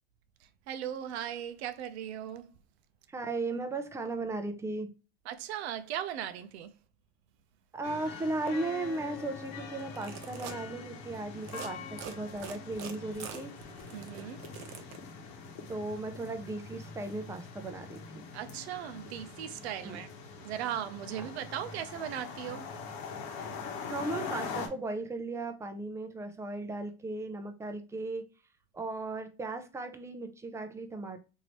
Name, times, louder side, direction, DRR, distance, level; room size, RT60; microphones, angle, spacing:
voice 1, 0.4-2.5 5.3-6.7 13.9-14.4 18.3-20.1 20.4-22.7, right 10 dB, 85° right, 0.5 m, -38 dB
voice 2, 3.1-4.9 7.7-13.6 15.7-18.2 19.8-20.0 21.2-21.3 23.9-28.3 28.7-31.2, right 2 dB, 10° right, 0.4 m, -36 dB
sound 1, 7.8-24.7, left 5 dB, 60° left, 1.0 m, -43 dB
sound 2, 9.8-10.6 11.4-11.7 12.0-15.0, right 8 dB, 60° right, 0.8 m, -44 dB
3.1 x 2.7 x 2.9 m
supercardioid pair, 115°, 31 cm